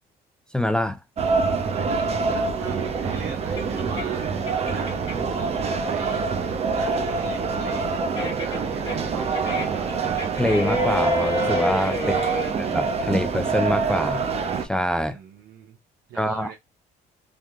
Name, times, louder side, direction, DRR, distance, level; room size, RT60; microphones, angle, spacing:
voice 1, 0.5-1.0 10.4-12.0 12.6-14.2 14.6-15.2 16.2-16.5, equal, 5° left, 0.3 m, -24 dB
sound 1, 1.2-14.6, right 4 dB, 40° right, 0.7 m, -25 dB
voice 2, 1.7-6.5 6.7-10.0 12.0-12.5 15.1-15.8 16.1-16.5, right 7 dB, 90° right, 0.8 m, -41 dB
sound 2, 1.9-5.4 5.8-12.5, left 2 dB, 25° left, 1.5 m, -31 dB
3.6 x 2.8 x 2.4 m
cardioid pair, 110°, 17 cm